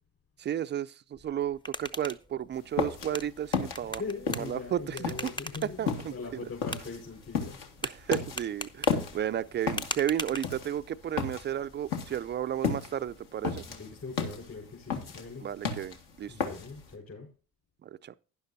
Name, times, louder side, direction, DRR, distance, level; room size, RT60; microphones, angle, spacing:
voice 1, 0.4-4.0 4.3-5.3 5.6-6.2 6.4-6.5 7.8-13.7 15.4-16.3 17.8-18.1, right 10 dB, 25° right, 0.4 m, -33 dB
sound 1, 1.3-11.0, left 1 dB, 10° left, 0.8 m, -42 dB
sound 2, 2.6-16.9, left 5 dB, 60° left, 2.0 m, -34 dB
voice 2, 3.8-7.6 8.9-9.1 13.5-15.5 16.3-17.3, left 4 dB, 35° left, 4.7 m, -41 dB
11.5 x 10.5 x 2.7 m
hypercardioid pair, 70°, 43 cm